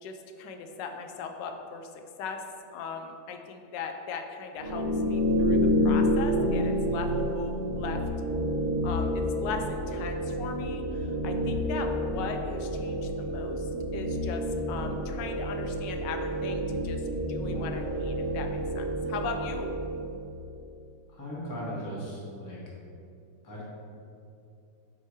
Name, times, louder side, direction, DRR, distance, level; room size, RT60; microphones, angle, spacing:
voice 1, 0.0-1.9 2.2-2.4 2.7-5.6 5.8-7.1 7.3-8.0 8.8-17.0 17.3-19.7, left 5 dB, 75° left, 5 dB, 1.2 m, -38 dB
sound 1, 4.6-20.3, equal, 55° right, 0.6 m, -29 dB
voice 2, 21.1-22.6 23.4-23.6, equal, 15° left, -6 dB, 0.9 m, -37 dB
8.0 x 2.9 x 4.8 m, 2.5 s
omnidirectional pair, 2.1 m